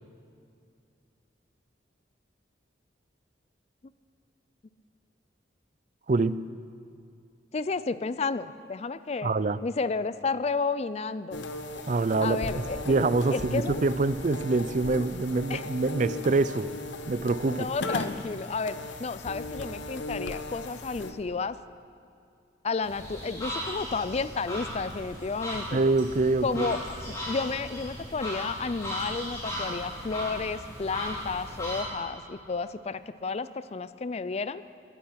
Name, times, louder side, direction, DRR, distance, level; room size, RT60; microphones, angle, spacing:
voice 1, 6.1-6.4 9.2-9.6 11.9-12.5 12.9-16.7 17.1-17.7 25.7-26.7, right 3 dB, 40° right, 15 dB, 0.4 m, -25 dB
voice 2, 7.5-9.3 9.6-11.5 12.2-12.8 13.3-13.8 15.5-15.6 17.6-21.6 22.6-25.8 26.4-26.8 27.1-34.6, left 4 dB, 35° left, 15 dB, 0.4 m, -31 dB
sound 1, 11.3-21.1, left 2 dB, 80° left, 1.0 m, -37 dB
sound 2, 22.8-31.8, left 1 dB, 15° left, 4.5 m, -37 dB
21.0 x 10.0 x 5.9 m, 2.5 s
head